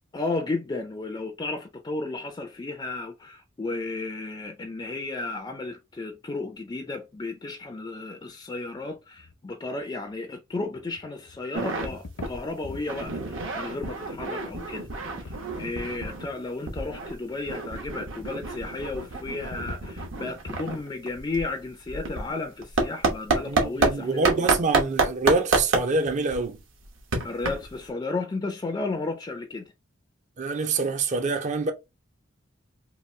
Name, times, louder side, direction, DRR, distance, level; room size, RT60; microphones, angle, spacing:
voice 1, 0.1-24.6 27.2-29.6, left 3 dB, 20° left, 0.4 m, -33 dB
sound 1, 9.2-9.4 9.9-10.2 10.6-11.4 11.9-13.0 13.7-13.8 14.9-15.4 15.7-16.4 16.8-16.9 18.8-20.7, left 3 dB, 70° left, 0.6 m, -43 dB
sound 2, 11.5-11.9 12.2-12.4 12.7-16.3 16.7-23.9 24.2-27.9, right 3 dB, 75° right, 1.0 m, -28 dB
voice 2, 23.5-26.6 30.4-31.7, right 3 dB, 35° right, 0.4 m, -26 dB
2.9 x 2.6 x 3.1 m
head